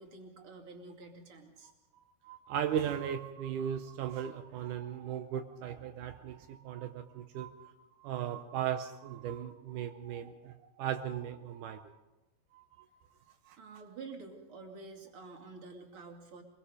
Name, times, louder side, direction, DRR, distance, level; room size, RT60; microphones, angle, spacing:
voice 1, 0.0-1.7 13.6-16.4, right 3 dB, 35° right, 2 dB, 2.9 m, -49 dB
voice 2, 1.9-12.0 12.5-13.6, right 9 dB, 80° right, 7 dB, 1.8 m, -38 dB
24.0 x 22.5 x 5.1 m, 1.0 s
omnidirectional pair, 4.6 m